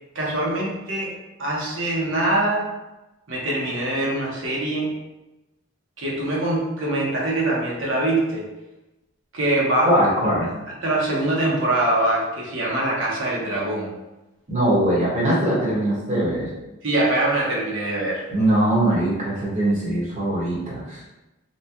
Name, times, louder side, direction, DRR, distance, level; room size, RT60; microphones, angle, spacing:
voice 1, 0.1-1.1 1.4-2.7 3.3-5.0 6.0-8.4 9.3-9.9 10.8-13.9 16.8-18.2, right 1 dB, 65° right, -4 dB, 1.0 m, -23 dB
voice 2, 9.8-10.5 14.5-16.5 18.3-21.0, right 1 dB, 35° right, -8 dB, 1.3 m, -21 dB
4.1 x 2.2 x 2.9 m, 1.0 s
head